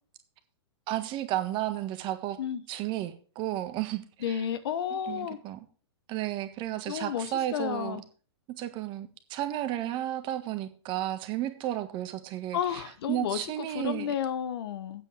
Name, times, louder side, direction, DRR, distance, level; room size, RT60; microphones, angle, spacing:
voice 1, 0.9-2.4 2.7-4.4 5.1-5.6 6.1-8.0 8.5-12.8 13.1-14.1, right 13 dB, 35° right, 1.6 m, -33 dB
voice 2, 4.2-5.4 6.9-8.0 12.5-15.0, left 9 dB, 60° left, 1.1 m, -32 dB
8.9 x 8.3 x 4.9 m
hypercardioid pair, 115°, 14 cm